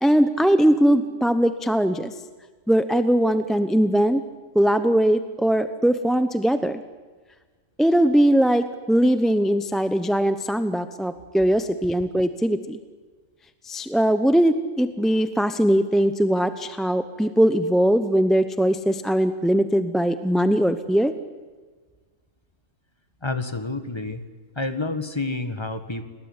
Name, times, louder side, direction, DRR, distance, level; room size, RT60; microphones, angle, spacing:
voice 1, 0.0-2.1 2.7-4.2 4.5-6.8 7.8-12.8 13.6-21.1, equal, ahead, 10 dB, 0.7 m, -20 dB
voice 2, 23.2-24.2 24.5-26.0, left 2 dB, 20° left, 9 dB, 1.8 m, -29 dB
29.5 x 19.5 x 9.8 m, 1.4 s
omnidirectional pair, 1.3 m